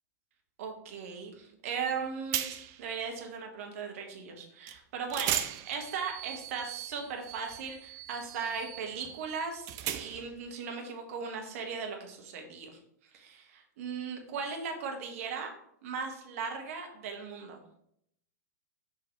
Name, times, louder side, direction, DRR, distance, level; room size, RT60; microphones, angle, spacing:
voice 1, 0.6-5.4 5.7-12.8 13.1-15.5 15.8-17.6, right 5 dB, 55° right, 3 dB, 1.3 m, -38 dB
sound 1, 1.9-2.0 2.3-2.8 4.7-4.8 5.1-10.4, right 12 dB, 35° right, 0.5 m, -38 dB
6.5 x 4.8 x 3.5 m, 0.72 s
figure-of-eight pair, 100°, 9 cm